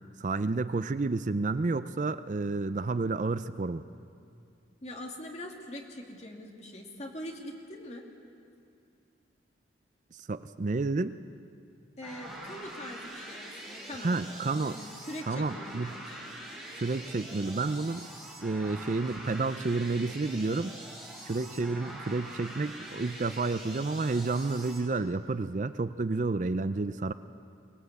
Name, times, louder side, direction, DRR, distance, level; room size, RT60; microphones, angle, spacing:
voice 1, 0.2-3.8 10.2-11.2 14.0-14.8 15.3-16.0 16.7-18.1 18.4-20.7 21.3-27.1, right 3 dB, 45° right, 13 dB, 0.5 m, -30 dB
voice 2, 4.8-8.1 12.0-14.2 14.5-16.4, left 1 dB, 40° left, 1 dB, 2.3 m, -43 dB
sound 1, 12.0-24.8, right 1 dB, ahead, 4.2 m, -44 dB
23.5 x 19.0 x 8.1 m, 2.4 s
head